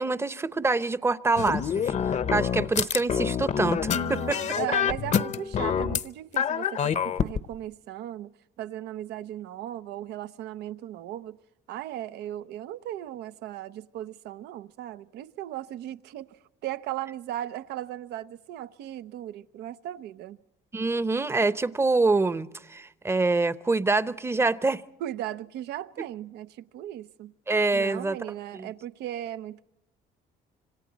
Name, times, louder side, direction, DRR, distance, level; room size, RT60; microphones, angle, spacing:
voice 1, 0.0-3.8 4.1-4.4 20.7-24.8 27.5-28.2 28.5-28.7, right 3 dB, 15° right, 0.8 m, -25 dB
sound 1, 1.4-6.0 6.4-7.4, left 8 dB, 45° left, 0.8 m, -27 dB
voice 2, 3.9-8.3 8.6-11.4 11.7-20.4 25.0-27.3 27.7-29.7, right 12 dB, 80° right, 0.8 m, -37 dB
26.5 x 25.5 x 4.0 m
cardioid pair, 110°, 17 cm